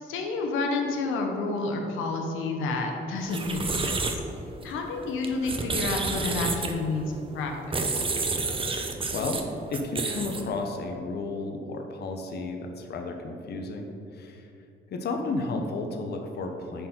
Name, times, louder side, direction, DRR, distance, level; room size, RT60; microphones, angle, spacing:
voice 1, 0.0-4.1 4.6-7.5 7.8-8.0, left 3 dB, 90° left, 2 dB, 0.9 m, -30 dB
sound 1, 3.2-10.6, right 3 dB, 25° right, 0.7 m, -31 dB
voice 2, 8.7-9.4 9.7-14.5 14.9-16.9, left 3 dB, 55° left, 3 dB, 0.8 m, -33 dB
10.5 x 4.3 x 4.4 m, 2.6 s
cardioid pair, 90°, 20 cm